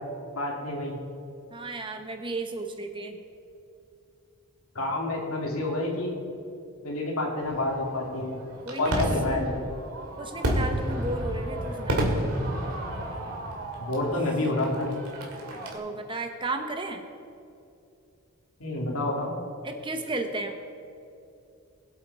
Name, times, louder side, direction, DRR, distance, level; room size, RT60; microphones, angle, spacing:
voice 1, 0.3-1.0 4.7-6.1 6.8-8.3 8.8-9.6 13.8-14.9 18.6-19.3, left 2 dB, 75° left, -1 dB, 2.6 m, -28 dB
voice 2, 1.5-3.2 8.7-9.5 10.2-12.1 15.7-17.0 19.6-20.6, right 2 dB, 20° right, 6 dB, 0.8 m, -34 dB
Fireworks, 7.4-15.8, right 1 dB, 80° right, 2.2 m, -31 dB
21.0 x 8.2 x 4.1 m, 2.7 s
head